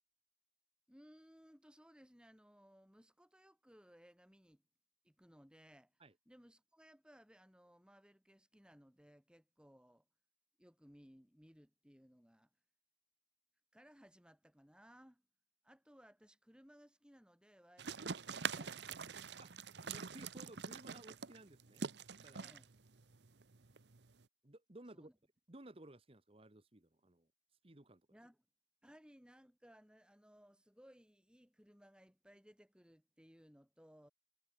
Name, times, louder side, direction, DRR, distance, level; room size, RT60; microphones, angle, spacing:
voice 1, 0.9-4.6 5.0-10.0 10.6-12.5 13.7-15.2 15.6-19.2 22.4-22.7 24.9-25.1 28.1-28.4 28.8-34.1, equal, 5° right, 6.6 m, -63 dB
sound 1, 17.8-24.2, right 5 dB, 65° right, 1.0 m, -45 dB
voice 2, 19.8-21.8 22.2-22.5 24.4-25.1 25.5-27.3 27.6-28.0, right 1 dB, 30° right, 1.4 m, -57 dB
head